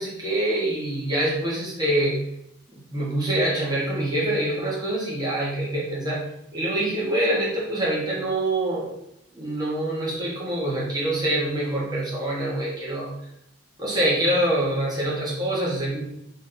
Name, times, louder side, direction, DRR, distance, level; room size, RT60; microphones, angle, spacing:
voice 1, 0.0-2.2 2.9-6.2 6.5-8.9 9.3-13.1 13.8-16.0, right 1 dB, 20° right, -6 dB, 1.9 m, -25 dB
5.1 x 3.7 x 5.4 m, 0.79 s
head